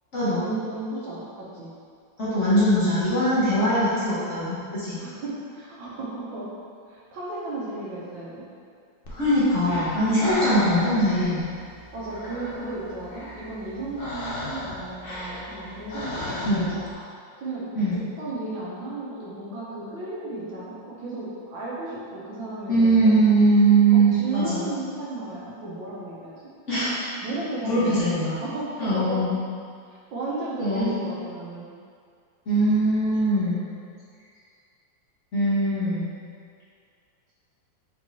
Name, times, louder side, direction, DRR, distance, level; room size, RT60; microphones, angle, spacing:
voice 1, 0.3-1.7 5.0-6.5 6.9-8.4 10.1-10.4 11.9-16.8 17.4-23.2 23.9-26.5 27.2-28.0 28.4-29.2 30.1-31.7, right 2 dB, 75° right, -6 dB, 1.7 m, -34 dB
voice 2, 2.2-5.0 9.1-11.4 16.5-16.7 17.8-18.0 22.7-24.6 26.7-27.0 27.6-28.3 28.8-29.4 30.6-30.9 32.5-33.6 35.3-36.1, right 1 dB, 45° left, -11 dB, 1.2 m, -21 dB
Breathing, 9.0-16.9, left 1 dB, 75° left, 0.5 m, -35 dB
4.6 x 4.2 x 2.7 m, 2.2 s
omnidirectional pair, 2.1 m